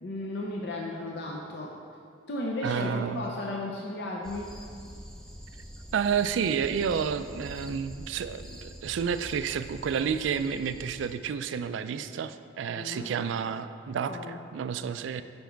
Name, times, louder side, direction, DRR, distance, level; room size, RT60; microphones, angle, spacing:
voice 1, 0.0-2.0 2.3-4.5 12.7-13.1 14.1-14.4, left 1 dB, 55° left, -2 dB, 0.6 m, -35 dB
voice 2, 2.6-3.3 5.9-15.2, right 7 dB, 70° right, 12 dB, 0.3 m, -30 dB
sound 1, 4.2-11.2, equal, 5° left, 0.4 m, -45 dB
7.1 x 5.3 x 4.5 m, 2.3 s
head